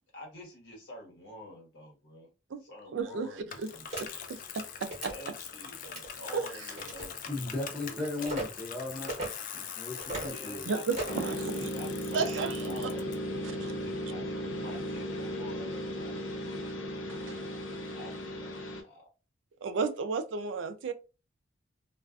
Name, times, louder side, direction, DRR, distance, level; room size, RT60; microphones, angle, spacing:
voice 1, 0.1-2.3 2.6-4.1 5.1-8.5 10.3-13.5 13.8-16.3 17.9-19.1, left 1 dB, 65° left, 1.1 m, -48 dB
voice 2, 2.9-3.7 4.3-4.6 5.0-5.1 6.3-6.7 10.7-11.5 12.1-12.7 13.6-13.7 17.1-17.4 19.6-20.9, right 5 dB, 80° right, 0.4 m, -33 dB
Bicycle, 3.5-13.1, left 8 dB, 45° left, 0.3 m, -43 dB
sound 1, 3.9-4.0 4.8-5.1 5.8-6.1 6.8-7.1 8.2-8.5 9.1-9.3 10.0-10.3 10.9-11.3, right 1 dB, 40° right, 0.9 m, -36 dB
voice 3, 7.3-9.1 9.5-10.7, left 2 dB, 5° left, 0.7 m, -36 dB
sound 2, 11.1-18.8, equal, 90° left, 0.6 m, -36 dB
2.4 x 2.3 x 2.3 m
head